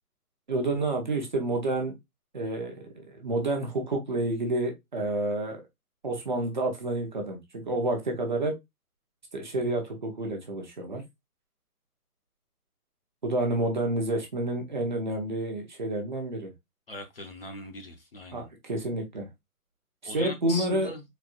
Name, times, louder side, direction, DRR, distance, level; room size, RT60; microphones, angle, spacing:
voice 1, 0.5-1.9 2.3-5.6 6.0-8.5 9.3-11.0 13.2-16.5 18.3-19.3 20.0-20.9, right 2 dB, 30° right, 0.7 m, -29 dB
voice 2, 16.9-18.5 20.0-21.0, left 2 dB, 40° left, 0.6 m, -39 dB
4.2 x 2.5 x 2.2 m
hypercardioid pair, 170°, 46 cm